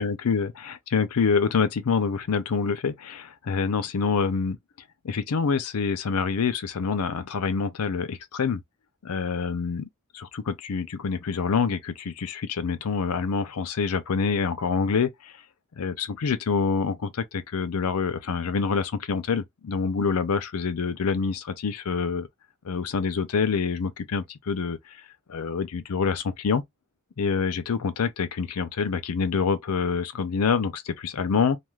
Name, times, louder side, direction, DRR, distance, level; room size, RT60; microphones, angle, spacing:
voice 1, 0.0-4.6 5.0-8.6 9.0-9.9 10.1-15.3 15.8-22.3 22.6-24.8 25.3-26.6 27.2-31.6, left 5 dB, 80° left, 0.5 m, -26 dB
2.3 x 2.3 x 3.1 m
head